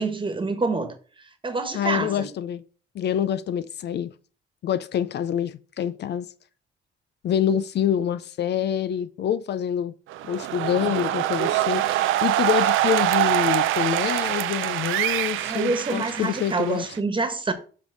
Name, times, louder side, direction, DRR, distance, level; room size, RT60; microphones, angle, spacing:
voice 1, 0.0-2.3 15.4-17.5, right 3 dB, 25° right, 1.4 m, -27 dB
voice 2, 1.7-2.6 2.9-4.1 4.6-6.3 7.2-9.9 10.3-16.8, left 9 dB, 60° left, 0.5 m, -26 dB
sound 1, 10.1-17.0, right 13 dB, 85° right, 0.5 m, -24 dB
7.5 x 3.5 x 6.1 m
cardioid pair, 90°, 20 cm